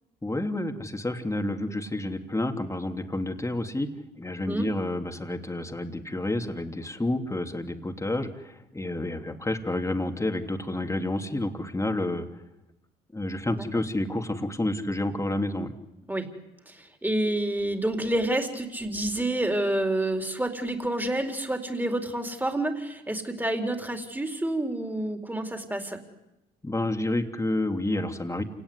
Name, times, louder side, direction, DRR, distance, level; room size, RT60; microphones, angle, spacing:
voice 1, 0.2-3.9 4.2-12.3 13.1-15.7 26.6-28.4, left 1 dB, 15° left, 5 dB, 3.0 m, -29 dB
voice 2, 16.7-26.0, right 1 dB, 10° right, 4 dB, 4.4 m, -28 dB
28.0 x 18.0 x 9.9 m, 0.95 s
supercardioid pair, 65°, 21 cm